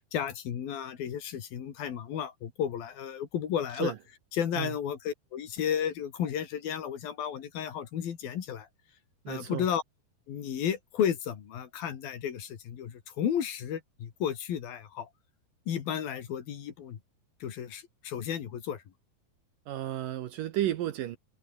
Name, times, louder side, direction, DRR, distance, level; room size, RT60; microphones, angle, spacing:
voice 1, 0.1-3.9 4.3-8.7 9.3-9.8 10.3-15.1 15.7-17.0 17.4-18.8, left 9 dB, 65° left, 4.0 m, -33 dB
voice 2, 9.3-9.7 19.7-21.2, right 13 dB, 70° right, 2.3 m, -32 dB
omnidirectional pair, 4.7 m